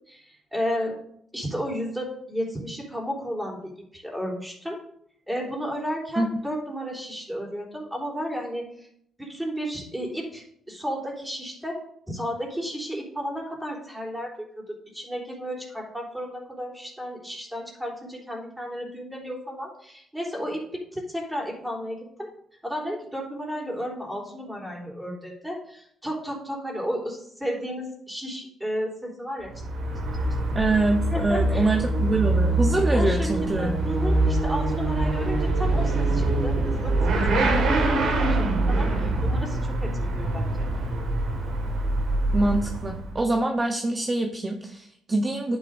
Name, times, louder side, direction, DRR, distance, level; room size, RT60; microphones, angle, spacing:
voice 1, 0.1-1.0 1.3-4.8 5.3-8.9 9.2-11.8 12.1-14.3 14.7-22.3 22.6-29.5 31.1-31.7 32.9-40.7 45.3-45.4, equal, 5° right, -2 dB, 3.5 m, -33 dB
Motorcycle / Accelerating revving vroom, 29.4-43.3, right 2 dB, 75° right, 1.9 m, -24 dB
voice 2, 30.5-33.8 42.3-45.6, right 2 dB, 25° right, 3 dB, 0.9 m, -25 dB
10.5 x 9.7 x 2.7 m, 0.71 s
cardioid pair, 90°, 0 cm